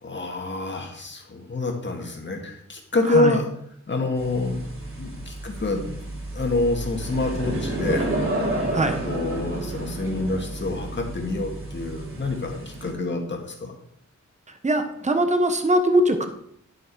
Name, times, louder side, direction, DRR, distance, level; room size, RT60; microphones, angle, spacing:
voice 1, 0.0-3.5 3.9-4.6 5.0-6.0 6.3-8.1 9.1-13.7, left 2 dB, 35° left, 2 dB, 1.8 m, -27 dB
sound 1, 4.2-12.9, right 2 dB, 45° right, 3.2 m, -31 dB
voice 2, 14.6-16.3, right 1 dB, 25° right, 6 dB, 1.1 m, -21 dB
11.0 x 7.0 x 4.7 m, 0.67 s
wide cardioid pair, 170°, 30 cm